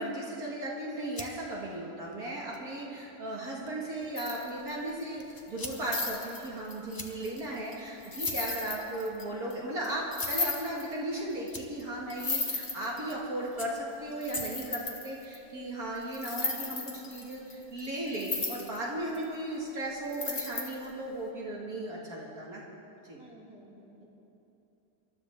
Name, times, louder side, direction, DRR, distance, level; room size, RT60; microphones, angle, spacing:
voice 1, 0.0-22.6 23.0-23.2, right 1 dB, 60° right, -4 dB, 2.3 m, -36 dB
sound 1, 0.8-14.9, left 2 dB, 15° left, 0.9 m, -49 dB
sound 2, 4.2-4.9 5.4-9.2 9.5-9.6 9.8-9.9 10.1-10.9 11.5-11.6 11.8-11.9 12.1-13.1 13.8-13.9 14.2-15.4 16.1-18.8 19.1-19.2 20.1-20.9, left 3 dB, 35° left, 1.6 m, -35 dB
voice 2, 23.2-24.1, equal, 5° right, -5 dB, 2.9 m, -55 dB
26.5 x 13.0 x 3.6 m, 2.9 s
omnidirectional pair, 1.9 m